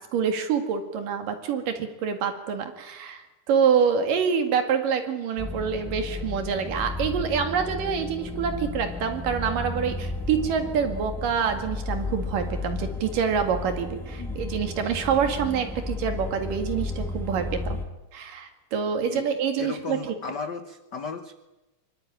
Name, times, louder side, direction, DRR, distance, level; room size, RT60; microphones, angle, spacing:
voice 1, 0.1-3.2 3.5-17.8 18.1-20.2, right 7 dB, 85° right, 6 dB, 3.8 m, -26 dB
sound 1, 5.4-17.8, left 2 dB, 5° left, 0.3 m, -33 dB
voice 2, 19.6-21.3, left 5 dB, 85° left, 8 dB, 0.9 m, -35 dB
24.0 x 24.0 x 8.9 m, 1.0 s
omnidirectional pair, 3.7 m